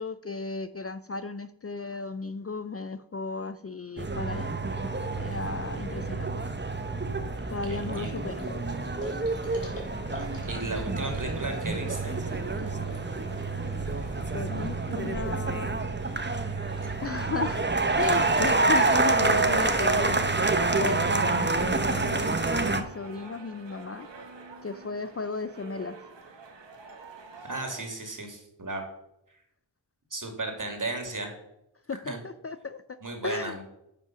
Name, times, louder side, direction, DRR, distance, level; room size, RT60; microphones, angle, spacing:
voice 1, 0.0-4.8 5.1-6.3 7.5-8.5 14.3-15.8 17.0-17.7 18.0-20.5 20.8-24.1 24.6-26.0 31.9-33.0 33.2-33.6, left 4 dB, 35° left, 13 dB, 0.5 m, -35 dB
sound 1, 4.0-22.8, right 3 dB, 25° right, 1.0 m, -28 dB
voice 2, 7.6-8.1 10.4-12.1 27.5-28.8 29.3-29.4 30.1-31.3 32.0-32.2 33.0-33.6, right 2 dB, 45° right, 4 dB, 2.5 m, -35 dB
sound 2, 7.7-15.3, left 2 dB, 70° left, 3.3 m, -46 dB
sound 3, 9.4-27.8, right 3 dB, 75° right, 1.6 m, -46 dB
10.5 x 5.5 x 6.1 m, 0.82 s
cardioid pair, 45°, 44 cm